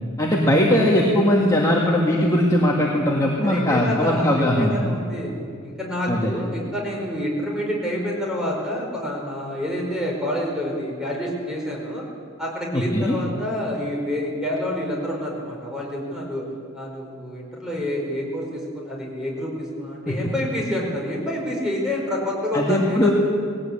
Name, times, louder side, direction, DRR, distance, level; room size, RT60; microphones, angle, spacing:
voice 1, 0.2-4.9 6.1-6.3 12.7-13.2 20.1-20.3 22.5-23.1, left 1 dB, 15° left, -3 dB, 1.9 m, -20 dB
voice 2, 3.4-5.3 5.6-12.1 12.4-16.4 16.7-23.1, left 1 dB, 5° right, -2 dB, 4.8 m, -28 dB
19.5 x 17.5 x 8.8 m, 2.3 s
head